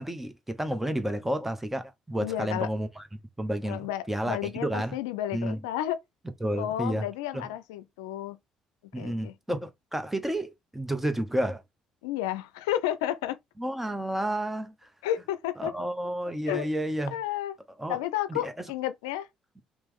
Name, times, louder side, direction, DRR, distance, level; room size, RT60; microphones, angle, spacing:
voice 1, 0.0-5.0 5.3-5.6 6.4-7.1 7.3-7.4 8.9-11.6 13.6-14.7 15.6-17.2 17.8-18.0 18.3-18.5, right 1 dB, 10° right, 0.9 m, -31 dB
voice 2, 2.2-2.7 3.7-6.0 6.6-8.4 9.0-9.3 12.0-13.4 15.0-15.7 16.5-16.7 17.1-17.6 17.9-19.3, left 12 dB, 90° left, 0.4 m, -32 dB
3.0 x 3.0 x 3.6 m
hypercardioid pair, 60°, 2 cm